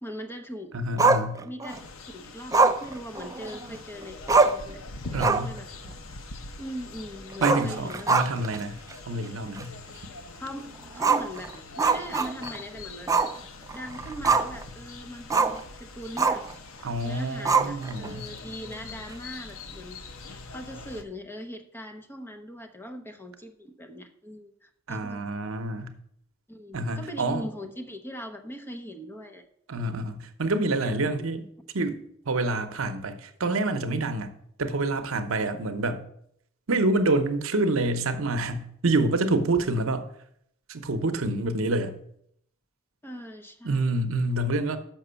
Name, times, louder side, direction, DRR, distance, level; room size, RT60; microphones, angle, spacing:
voice 1, 0.0-0.7 1.3-1.8 2.1-4.8 5.1-5.7 6.6-8.2 10.4-13.1 13.7-16.4 17.0-20.0 20.5-25.2 26.5-29.4 30.8-31.2 43.0-43.8, equal, 10° left, 5 dB, 0.8 m, -40 dB
voice 2, 0.7-1.4 5.1-5.5 7.4-8.8 9.1-9.7 16.8-18.3 24.9-25.9 26.7-27.4 29.7-31.4 31.7-32.0 32.3-34.3 34.6-36.0 36.7-40.0 40.7-41.9 43.6-44.8, right 2 dB, 70° right, 8 dB, 0.8 m, -27 dB
Growling, 1.0-1.8 2.5-3.8 4.0-4.1 4.3-4.7 5.1-5.6 5.9-6.0 7.3-8.6 8.9-9.0 9.6-9.7 11.0-12.6 13.1-13.4 13.7-14.6 15.3-15.6 16.2-16.5 17.5-18.1, right 4 dB, 15° right, 0.3 m, -23 dB
sound 1, 1.7-21.0, left 3 dB, 70° left, 0.8 m, -43 dB
6.0 x 5.9 x 6.8 m, 0.69 s
head